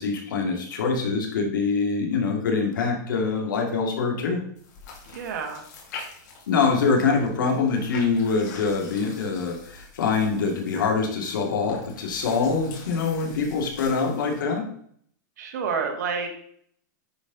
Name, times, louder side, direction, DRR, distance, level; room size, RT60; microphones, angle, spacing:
voice 1, 0.0-4.4 6.5-14.7, left 4 dB, 85° left, 2 dB, 2.2 m, -24 dB
sound 1, 4.6-14.4, left 4 dB, 65° left, 2.7 m, -45 dB
voice 2, 5.1-5.6 15.4-16.3, right 5 dB, 60° right, 4 dB, 1.8 m, -29 dB
9.8 x 4.3 x 3.9 m, 0.63 s
supercardioid pair, 160°, 10 cm